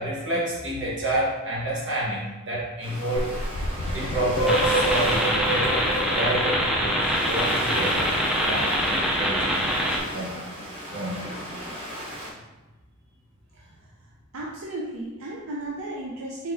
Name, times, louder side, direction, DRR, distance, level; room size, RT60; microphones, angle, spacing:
voice 1, 0.0-3.3 3.9-8.1 8.4-9.7 10.1-10.4 10.9-11.3, right 1 dB, 55° right, -5 dB, 1.4 m, -29 dB
Ocean, 2.8-12.3, equal, 25° right, 1.0 m, -37 dB
sound 1, 3.2-8.0, right 1 dB, 70° left, 0.4 m, -28 dB
sound 2, 4.5-10.0, equal, 5° right, 0.5 m, -24 dB
voice 2, 14.3-16.5, right 1 dB, 85° right, -3 dB, 0.6 m, -34 dB
4.0 x 3.9 x 2.7 m, 1.1 s
head